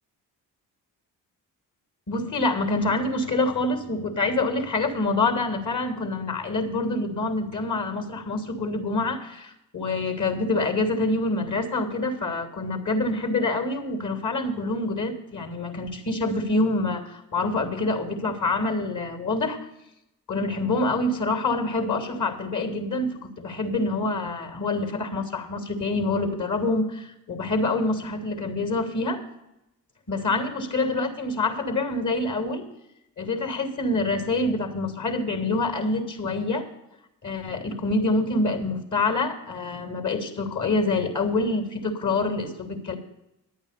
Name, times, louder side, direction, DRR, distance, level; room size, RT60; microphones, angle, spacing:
voice 1, 2.1-19.6 20.3-29.2 30.1-32.7 33.2-36.7 37.2-43.0, left 2 dB, 40° left, 6 dB, 2.9 m, -26 dB
11.0 x 8.8 x 6.8 m, 0.89 s
hypercardioid pair, 45°, 47 cm